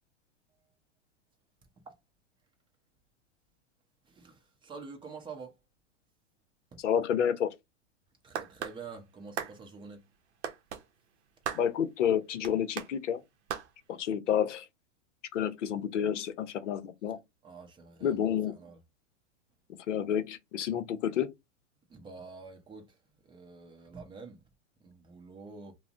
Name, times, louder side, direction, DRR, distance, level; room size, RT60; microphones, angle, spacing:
voice 1, 4.1-5.5 6.7-6.8 8.2-10.0 17.4-18.8 21.9-22.9 23.2-24.4 24.8-25.7, right 4 dB, 15° right, 0.6 m, -47 dB
voice 2, 6.8-7.5 11.5-13.2 14.0-14.6 15.3-17.2 18.0-18.5 19.9-21.3, left 9 dB, 80° left, 0.6 m, -29 dB
sound 1, 8.3-8.8 9.4-9.5 10.4-10.8 11.4-11.7 12.4-12.9 13.5-13.7, right 8 dB, 70° right, 0.6 m, -35 dB
2.4 x 2.1 x 3.4 m
hypercardioid pair, 115°, 36 cm